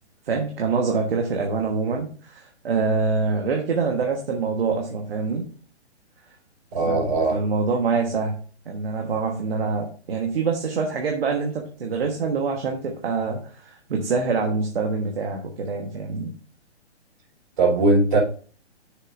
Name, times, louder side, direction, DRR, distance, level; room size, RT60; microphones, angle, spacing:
voice 1, 0.2-5.4 6.8-8.3 8.6-16.3, right 4 dB, 60° right, 2 dB, 1.4 m, -25 dB
voice 2, 6.7-7.4 17.6-18.2, right 2 dB, 40° right, -3 dB, 4.4 m, -19 dB
9.5 x 6.6 x 2.6 m, 0.41 s
hypercardioid pair, 170°, 34 cm